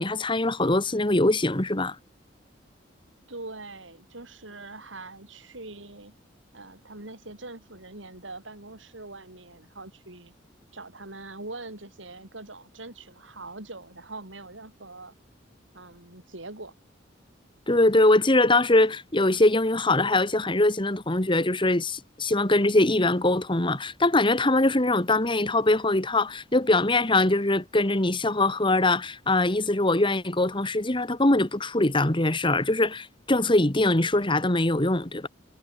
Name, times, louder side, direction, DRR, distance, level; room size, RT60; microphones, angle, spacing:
voice 1, 0.0-2.0 17.7-35.3, left 2 dB, 25° left, 1.9 m, -22 dB
voice 2, 3.3-6.1 6.5-10.3 10.7-15.1 15.7-16.7, right 2 dB, 85° right, 7.0 m, -42 dB
head